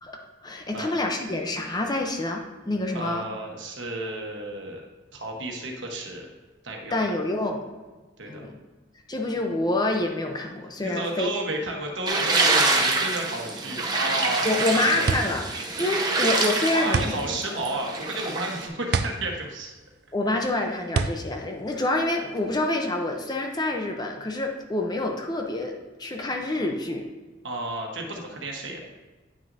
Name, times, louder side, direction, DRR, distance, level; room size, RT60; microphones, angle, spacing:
voice 1, 0.0-3.2 6.9-7.6 8.3-8.6 9.1-11.3 14.4-15.4 15.8-17.2 20.1-27.1, left 2 dB, 20° left, 2 dB, 0.7 m, -27 dB
voice 2, 2.9-4.8 5.1-6.3 6.6-7.0 8.2-8.4 10.8-15.1 16.7-19.7 27.4-28.8, right 2 dB, 75° right, 1 dB, 1.2 m, -32 dB
sound 1, 12.1-18.7, right 3 dB, 20° right, 0.7 m, -26 dB
sound 2, 15.1-22.6, right 4 dB, 55° right, 0.4 m, -30 dB
9.3 x 6.0 x 2.7 m, 1.2 s
head